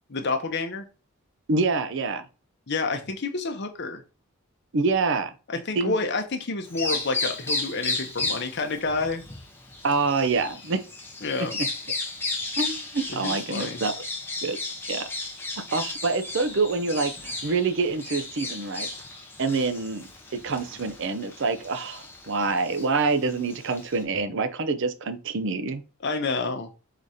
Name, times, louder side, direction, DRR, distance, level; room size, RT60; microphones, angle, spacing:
voice 1, 0.1-0.9 2.7-4.0 5.5-9.2 11.2-11.5 13.1-13.8 26.0-26.7, left 3 dB, 50° left, 0.7 m, -29 dB
voice 2, 1.5-2.2 4.7-5.3 5.8-6.0 9.8-10.8 11.6-11.7 12.6-13.9 14.4-14.6 14.9-15.0 15.7-18.9 19.4-25.8, right 4 dB, 55° right, 0.5 m, -26 dB
Bird vocalization bird call bird song, 6.6-24.0, left 3 dB, 10° left, 0.7 m, -34 dB
3.9 x 2.8 x 4.8 m
head